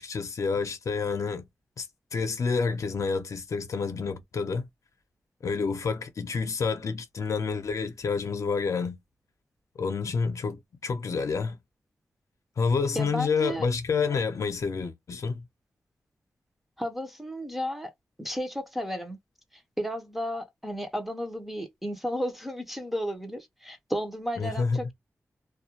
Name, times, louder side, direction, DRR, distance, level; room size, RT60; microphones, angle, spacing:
voice 1, 0.0-1.4 1.8-1.9 2.1-4.7 5.4-9.0 9.8-11.6 12.6-15.5 24.4-24.8, left 5 dB, 65° left, 0.6 m, -28 dB
voice 2, 13.0-13.7 16.8-17.9 18.2-19.2 19.5-24.9, equal, 5° right, 0.6 m, -33 dB
2.3 x 2.1 x 2.8 m
wide cardioid pair, 120°, 6 cm